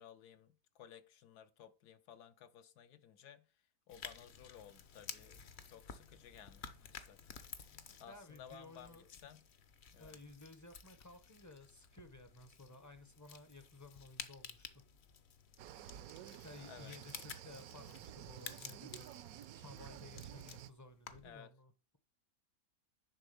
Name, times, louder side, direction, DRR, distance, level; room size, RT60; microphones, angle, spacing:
voice 1, 0.0-3.5 3.9-9.5 9.9-10.2 16.5-16.9 21.2-21.5, left 9 dB, 75° left, 1.3 m, -57 dB
sound 1, 3.9-21.4, left 6 dB, 50° left, 0.9 m, -53 dB
voice 2, 8.1-9.1 10.0-14.8 16.4-19.1 19.5-22.0, left 2 dB, 20° left, 0.5 m, -56 dB
sound 2, 15.6-20.7, right 11 dB, 70° right, 0.9 m, -52 dB
10.5 x 3.6 x 6.8 m
omnidirectional pair, 1.8 m